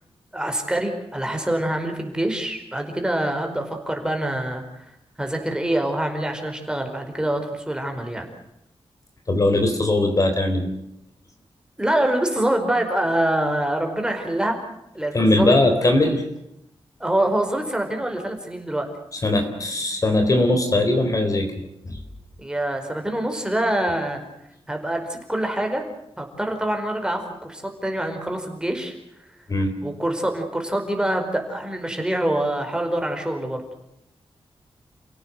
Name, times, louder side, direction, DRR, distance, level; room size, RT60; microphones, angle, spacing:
voice 1, 0.3-4.6 5.2-8.3 11.8-14.6 14.9-15.5 15.8-15.9 17.0-18.9 22.4-24.2 24.7-25.8 26.2-28.9 29.8-33.6, right 1 dB, 10° right, 4 dB, 4.9 m, -25 dB
voice 2, 9.3-10.7 15.1-16.2 19.2-22.0 29.5-29.7, left 2 dB, 35° left, 5 dB, 3.8 m, -20 dB
29.5 x 17.0 x 7.9 m, 0.81 s
wide cardioid pair, 130°, 10 cm